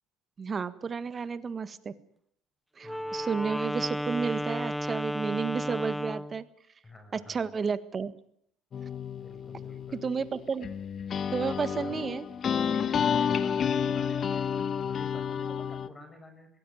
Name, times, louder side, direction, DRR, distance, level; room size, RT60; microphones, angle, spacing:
voice 1, 0.4-1.9 2.8-6.4 7.1-8.1 9.9-10.7 11.3-12.3, right 5 dB, 35° right, 13 dB, 1.6 m, -32 dB
voice 2, 2.8-3.2 6.8-7.5 9.2-10.0 11.8-12.0 12.8-14.5 14.8-16.5, left 2 dB, 20° left, 6 dB, 7.0 m, -50 dB
Wind instrument woodwind instrument, 2.8-6.4, equal, ahead, 0.9 m, -33 dB
sound 1, 8.7-15.9, left 7 dB, 45° left, 1.2 m, -30 dB
22.0 x 16.5 x 9.3 m, 0.70 s
supercardioid pair, 80°, 0 cm